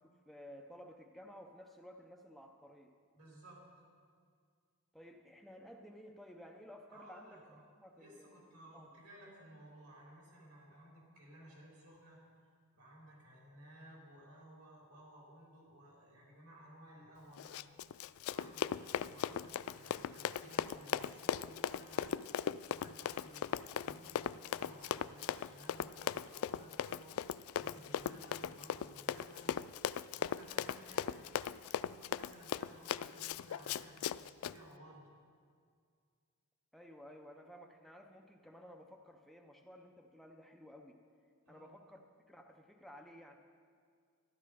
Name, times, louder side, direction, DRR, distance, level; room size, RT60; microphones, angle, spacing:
voice 1, 0.0-3.0 4.9-7.4 7.8-8.5 8.7-8.9 36.7-41.0 41.5-43.4, equal, ahead, 2 dB, 0.6 m, -55 dB
voice 2, 3.1-3.7 6.9-7.6 8.0-12.2 12.8-17.6 18.3-22.2 22.6-27.2 27.6-29.6 30.1-31.3 31.8-34.1 34.4-35.1 41.5-41.7, right 1 dB, 85° right, -3 dB, 3.9 m, -57 dB
Run, 17.4-34.6, left 9 dB, 75° left, 0.3 m, -38 dB
13.0 x 11.5 x 5.0 m, 2.1 s
head